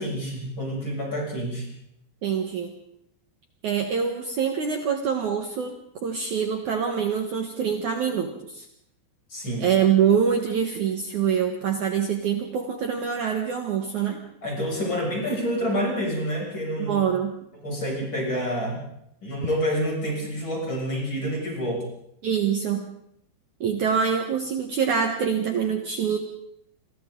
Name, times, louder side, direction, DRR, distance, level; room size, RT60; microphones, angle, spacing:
voice 1, 0.0-1.7 9.3-9.7 14.4-17.0 17.6-18.8 19.2-21.8, equal, 25° left, -2 dB, 7.0 m, -28 dB
voice 2, 2.2-2.7 3.6-8.6 9.6-14.2 16.8-17.3 22.2-22.9 23.6-26.2, right 7 dB, 80° right, 3 dB, 1.7 m, -25 dB
29.5 x 24.0 x 3.9 m, 0.74 s
omnidirectional pair, 5.9 m